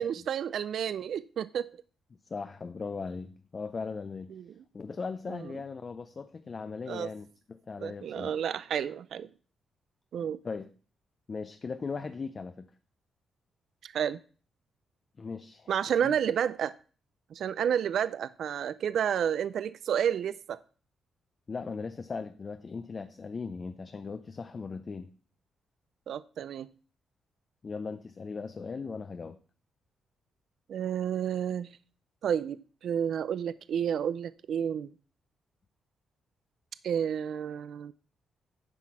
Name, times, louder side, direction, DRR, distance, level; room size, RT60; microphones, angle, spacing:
voice 1, 0.0-1.7 4.3-4.4 6.9-7.1 7.8-9.3 10.1-10.4 13.8-14.2 15.7-16.7 17.3-20.6 26.1-26.7 30.7-31.7 32.2-34.9 36.8-37.9, right 8 dB, 60° right, 0.3 m, -30 dB
voice 2, 2.3-4.3 4.7-8.4 10.2-10.7 11.3-12.7 15.2-15.8 16.0-16.1 21.5-25.1 27.6-29.4, left 4 dB, 30° left, 0.4 m, -38 dB
9.9 x 6.0 x 4.7 m
wide cardioid pair, 165°, 0 cm